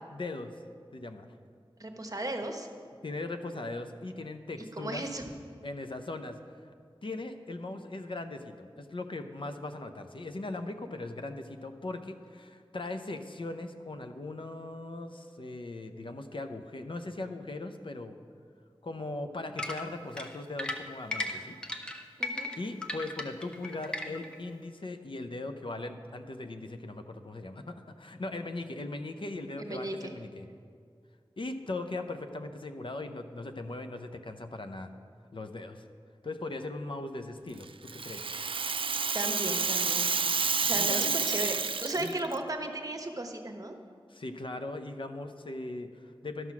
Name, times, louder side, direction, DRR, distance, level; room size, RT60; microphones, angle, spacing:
voice 1, 0.1-0.6 0.9-1.4 3.0-5.0 5.6-6.4 7.0-18.1 18.8-21.6 22.6-30.5 31.4-34.9 35.3-35.8 36.2-38.3 40.6-41.2 42.0-42.1 44.1-46.5, left 2 dB, 60° left, 7 dB, 0.7 m, -39 dB
voice 2, 1.8-2.7 4.8-5.2 22.2-22.5 29.7-30.0 39.1-40.1 40.6-43.8, right 1 dB, 40° right, 4 dB, 1.1 m, -35 dB
sound 1, 19.6-24.4, left 2 dB, 10° left, 0.9 m, -36 dB
Rattle (instrument), 37.6-42.3, right 5 dB, 65° right, 0.4 m, -29 dB
12.5 x 5.8 x 6.0 m, 2.2 s
wide cardioid pair, 45°, 10 cm